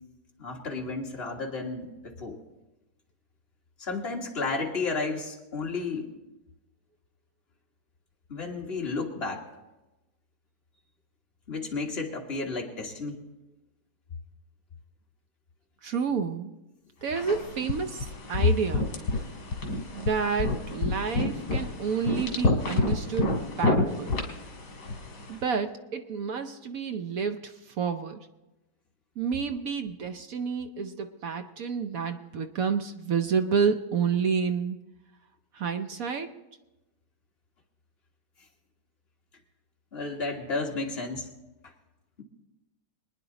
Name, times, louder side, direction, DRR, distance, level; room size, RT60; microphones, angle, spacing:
voice 1, 0.4-2.4 3.8-6.1 8.3-9.4 11.5-13.2 39.9-41.3, left 3 dB, 35° left, 0 dB, 1.9 m, -32 dB
voice 2, 15.8-16.5 17.0-18.9 19.9-24.1 25.3-28.3 29.2-34.8 35.5-36.4, right 6 dB, 60° right, 8 dB, 1.0 m, -29 dB
sound 1, 17.2-25.3, left 2 dB, 65° left, 2.6 m, -29 dB
25.0 x 9.9 x 3.9 m, 1.0 s
omnidirectional pair, 1.9 m